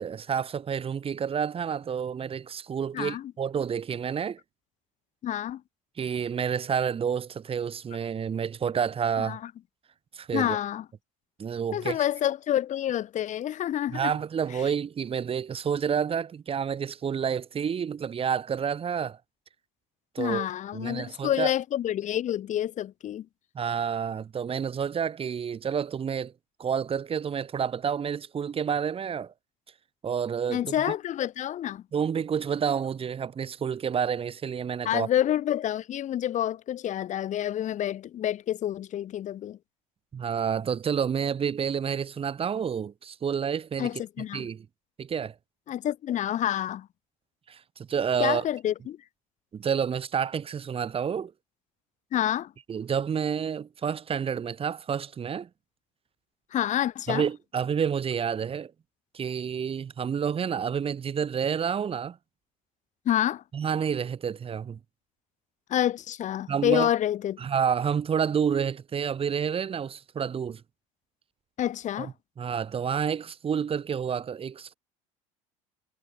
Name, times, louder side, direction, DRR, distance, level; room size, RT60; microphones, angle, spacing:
voice 1, 0.0-4.4 6.0-9.4 10.1-10.6 11.4-12.0 13.9-19.2 20.2-20.5 20.7-21.5 23.6-26.3 26.6-29.3 30.0-30.7 31.9-35.1 40.1-43.9 44.3-44.7 45.0-45.3 47.5-48.4 49.5-51.3 52.7-55.5 57.1-58.7 59.1-62.2 63.5-64.8 66.5-66.9 67.4-70.6 72.0-74.7, right 7 dB, 35° right, 3.4 m, -29 dB
voice 2, 2.9-3.3 5.2-5.6 9.3-9.4 10.3-10.8 11.7-14.1 20.2-23.3 30.5-31.8 34.8-39.6 43.8-44.5 45.7-46.9 48.2-49.0 52.1-52.5 56.5-57.2 63.1-63.4 65.7-67.4 71.6-72.1, left 11 dB, 50° left, 2.3 m, -28 dB
hypercardioid pair, 80°, 16 cm